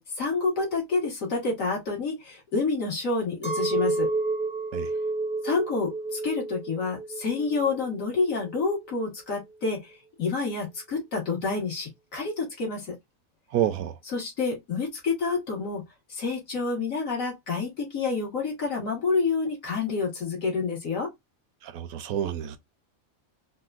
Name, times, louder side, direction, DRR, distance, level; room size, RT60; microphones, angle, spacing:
voice 1, 0.0-4.1 5.4-13.0 14.1-15.8 16.1-21.1, left 4 dB, 70° left, 1.9 m, -28 dB
Chink clink, 3.4-8.9, right 3 dB, 15° left, 0.3 m, -30 dB
voice 2, 13.5-13.9 21.6-22.6, right 11 dB, 80° right, 1.0 m, -28 dB
4.1 x 2.2 x 2.4 m
omnidirectional pair, 1.5 m